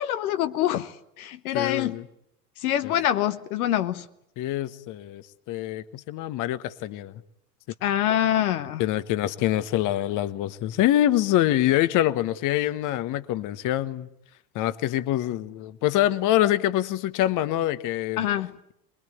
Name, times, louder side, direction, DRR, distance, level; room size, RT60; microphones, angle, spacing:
voice 1, 0.0-2.0 2.6-4.1 7.8-8.8 18.2-18.5, left 12 dB, 65° left, 10 dB, 1.0 m, -25 dB
voice 2, 1.5-2.1 2.8-2.9 4.4-7.1 8.8-14.1 14.5-18.2, left 13 dB, 40° left, 15 dB, 1.2 m, -25 dB
24.0 x 22.0 x 9.3 m, 0.78 s
figure-of-eight pair, 80°, 47 cm